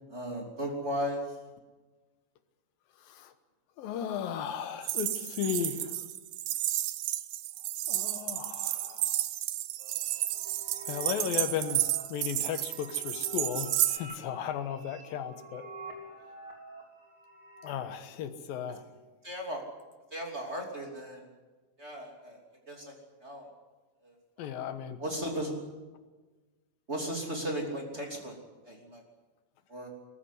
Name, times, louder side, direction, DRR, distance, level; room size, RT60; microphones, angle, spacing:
voice 1, 0.1-1.2 19.2-19.6 20.1-21.2 21.8-22.4 22.7-22.8 23.2-23.5 24.0-24.1 25.0-25.5 26.9-28.4 28.6-29.0 29.7-29.9, equal, 20° right, 1 dB, 3.0 m, -35 dB
voice 2, 3.0-3.3 3.8-6.0 7.9-9.2 10.9-15.7 17.6-18.9 24.4-25.0, left 8 dB, 85° left, 10 dB, 3.0 m, -35 dB
sound 1, 4.8-14.0, right 14 dB, 85° right, 2.6 m, -32 dB
sound 2, 9.8-17.9, right 1 dB, 35° right, 4.2 m, -47 dB
21.0 x 14.5 x 9.9 m, 1.3 s
omnidirectional pair, 4.0 m